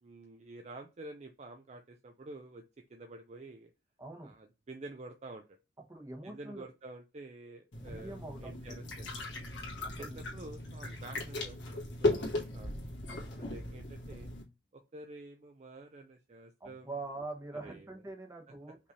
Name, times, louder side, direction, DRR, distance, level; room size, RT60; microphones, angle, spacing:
voice 1, 0.0-2.6 2.9-3.7 4.2-5.6 6.2-9.1 10.0-12.7 13.4-14.3 14.7-16.9 17.6-17.9, right 2 dB, 40° right, 5 dB, 0.5 m, -49 dB
voice 2, 4.0-4.3 5.9-6.7 7.8-8.8 9.8-10.2 16.6-18.8, right 2 dB, 15° right, 3 dB, 1.2 m, -44 dB
sound 1, 7.7-14.4, left 2 dB, 70° left, 1.7 m, -37 dB
5.1 x 3.3 x 2.7 m, 0.29 s
head